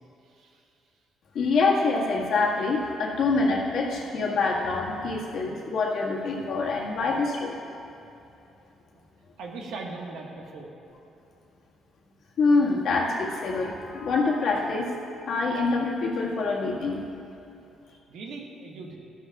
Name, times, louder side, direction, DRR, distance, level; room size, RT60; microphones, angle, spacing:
voice 1, 1.3-7.6 12.4-14.9 15.3-17.0, left 3 dB, 60° left, -4 dB, 1.7 m, -25 dB
voice 2, 9.4-10.7 18.1-19.0, right 3 dB, 80° right, 0 dB, 1.5 m, -39 dB
14.5 x 12.5 x 2.4 m, 2.8 s
cardioid pair, 160°, 0 cm